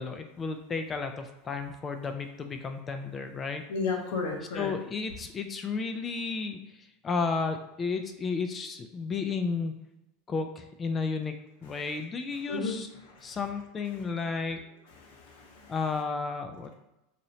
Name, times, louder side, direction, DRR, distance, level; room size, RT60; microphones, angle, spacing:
voice 1, 0.0-3.6 4.5-9.7 10.3-12.9 13.2-14.6 15.7-16.7, left 4 dB, 25° left, 6 dB, 0.3 m, -33 dB
voice 2, 3.7-4.7 11.7-11.8 12.5-12.8 13.1-13.4 15.0-15.7, left 4 dB, 75° left, 0 dB, 0.8 m, -33 dB
3.0 x 2.7 x 2.7 m, 0.95 s
supercardioid pair, 110°, 0 cm